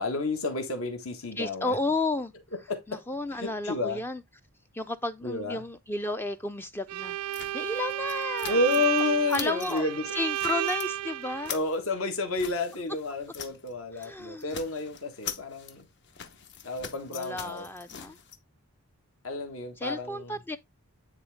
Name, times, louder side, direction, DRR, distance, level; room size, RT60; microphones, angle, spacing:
voice 1, 0.0-1.8 2.7-3.0 3.3-4.0 5.2-5.6 8.5-10.1 11.5-15.9 16.6-17.7 19.2-20.4, left 3 dB, 65° left, 1.5 m, -30 dB
voice 2, 1.4-2.3 2.9-4.2 4.7-8.6 9.3-9.9 10.1-11.5 13.9-14.6 17.1-18.2 19.8-20.6, left 2 dB, 10° left, 0.3 m, -32 dB
Bowed string instrument, 6.9-11.6, right 13 dB, 80° right, 0.4 m, -32 dB
sound 1, 7.3-9.0 9.3-9.8 10.1-10.9 11.2-13.7 14.0-14.1 14.4-18.4, left 8 dB, 50° left, 0.8 m, -42 dB
9.6 x 3.8 x 3.5 m
head